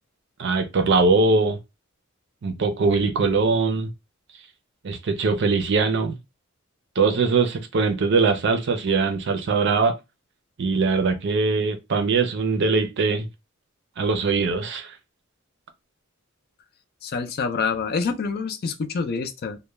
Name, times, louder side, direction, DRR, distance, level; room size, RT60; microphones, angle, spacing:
voice 1, 0.4-1.6 2.4-3.9 4.8-6.2 7.0-10.0 10.6-13.3 14.0-14.9, right 4 dB, 60° right, 0.5 m, -21 dB
voice 2, 17.0-19.6, left 5 dB, 50° left, 0.4 m, -27 dB
2.2 x 2.1 x 3.0 m
head